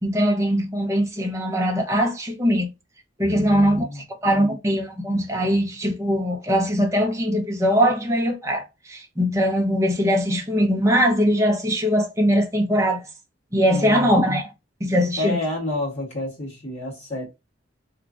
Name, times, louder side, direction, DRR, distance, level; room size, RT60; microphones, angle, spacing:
voice 1, 0.0-2.7 3.2-13.1 13.5-14.4 14.8-15.4, equal, 15° right, 0.6 m, -21 dB
voice 2, 3.3-4.0 13.7-14.2 15.2-17.3, left 1 dB, 35° left, 1.7 m, -29 dB
3.1 x 2.4 x 2.4 m
head